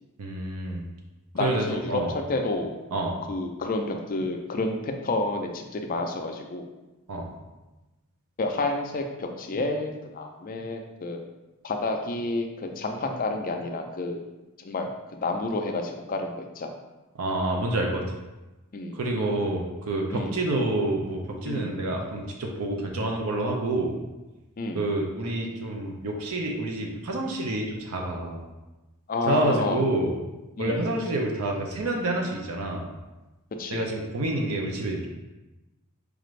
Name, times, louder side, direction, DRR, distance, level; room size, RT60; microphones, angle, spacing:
voice 1, 0.2-0.8 1.4-2.1 2.9-3.2 7.1-7.3 17.2-18.0 18.9-23.9 24.7-28.4 29.3-30.2 30.6-32.9 33.7-35.1, right 2 dB, 70° right, 1 dB, 0.5 m, -28 dB
voice 2, 1.3-2.8 3.3-6.7 8.4-11.2 11.6-14.2 14.6-16.7 18.7-19.0 20.1-20.4 21.5-21.8 24.6-24.8 29.1-29.8 30.6-30.8 33.5-33.8, left 2 dB, 40° left, 3 dB, 0.4 m, -30 dB
4.9 x 2.5 x 3.1 m, 1.1 s
head